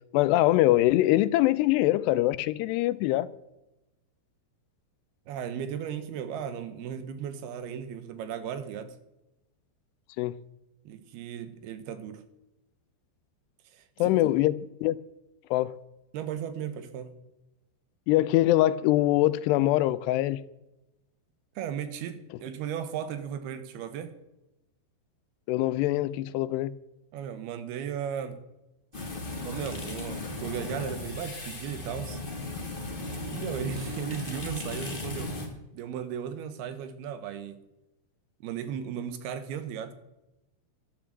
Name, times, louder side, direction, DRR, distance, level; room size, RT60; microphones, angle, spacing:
voice 1, 0.1-3.3 10.2-10.4 14.0-14.6 14.8-15.0 15.5-15.8 18.1-20.4 25.5-26.7, left 16 dB, 90° left, 2.7 m, -23 dB
voice 2, 5.3-9.0 10.9-12.2 13.7-14.3 16.1-17.2 21.6-24.1 27.1-28.4 29.4-32.2 33.2-35.4 35.7-37.6 38.4-39.9, right 8 dB, 75° right, 2.9 m, -36 dB
sound 1, 28.9-35.5, left 2 dB, 40° left, 0.7 m, -36 dB
12.5 x 10.5 x 7.4 m
omnidirectional pair, 4.7 m